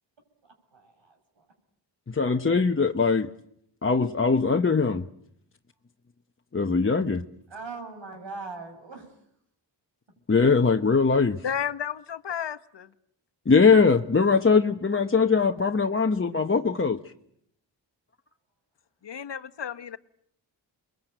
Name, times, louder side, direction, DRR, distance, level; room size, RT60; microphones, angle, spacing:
voice 1, 0.4-1.5 7.5-9.3, right 3 dB, 80° right, 7.1 m, -41 dB
voice 2, 2.1-3.3 3.8-5.0 6.5-7.2 10.3-11.4 13.5-17.0, left 4 dB, 30° left, 1.0 m, -21 dB
voice 3, 11.4-12.9 19.0-20.0, left 8 dB, 70° left, 1.3 m, -32 dB
29.0 x 22.0 x 9.1 m
wide cardioid pair, 75°, 44 cm